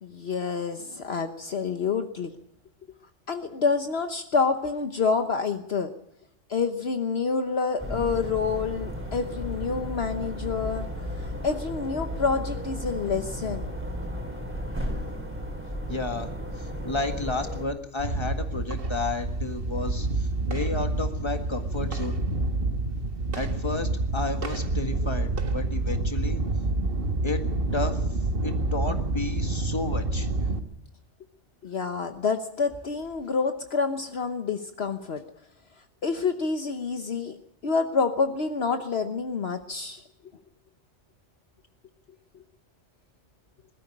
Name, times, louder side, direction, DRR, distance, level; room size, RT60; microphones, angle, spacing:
voice 1, 0.0-2.4 3.3-5.9 6.5-10.9 11.2-13.7 31.6-35.2 36.0-37.4 37.6-40.0, left 5 dB, 60° left, 7 dB, 1.3 m, -28 dB
sound 1, 7.8-17.6, equal, 10° right, 3.4 m, -34 dB
voice 2, 15.9-22.2 23.4-26.4 27.2-27.4 27.7-30.3, left 3 dB, 25° left, 5 dB, 1.9 m, -32 dB
sound 2, 18.0-30.6, right 2 dB, 50° right, 1.6 m, -28 dB
21.0 x 13.5 x 9.9 m, 0.75 s
omnidirectional pair, 1.2 m